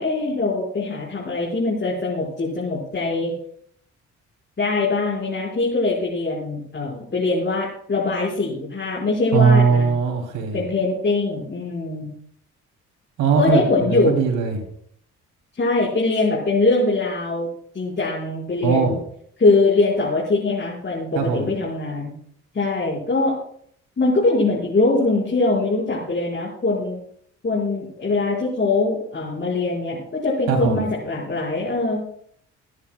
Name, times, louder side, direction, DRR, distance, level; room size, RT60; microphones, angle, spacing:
voice 1, 0.0-3.3 4.6-9.9 10.5-12.1 13.4-14.2 15.6-17.5 17.7-19.0 19.4-22.1 22.5-23.3 24.0-27.0 27.4-32.0, left 3 dB, 35° left, -4 dB, 4.9 m, -22 dB
voice 2, 9.3-10.6 13.2-13.6 13.9-14.6 18.6-18.9 21.2-21.5 30.5-30.8, right 5 dB, 85° right, 2 dB, 2.8 m, -19 dB
25.0 x 10.5 x 2.2 m, 0.65 s
cardioid pair, 90°, 30 cm